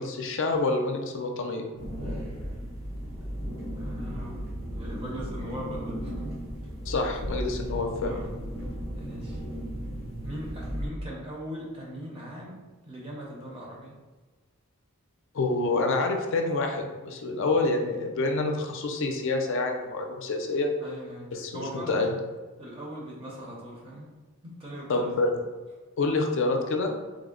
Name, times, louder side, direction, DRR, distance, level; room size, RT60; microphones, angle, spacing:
voice 1, 0.0-1.6 6.9-8.2 15.3-20.7 21.3-22.2 24.9-25.4 26.0-26.9, left 3 dB, 55° left, 3 dB, 0.4 m, -27 dB
sound 1, 1.8-10.9, equal, 70° right, 1.2 m, -35 dB
voice 2, 3.7-4.4 4.7-6.2 8.0-8.2 8.9-9.4 10.2-14.0 20.8-22.1 22.6-24.1 24.4-25.1 26.0-26.1, equal, 25° right, -4 dB, 0.6 m, -40 dB
3.4 x 2.0 x 3.6 m, 1.3 s
head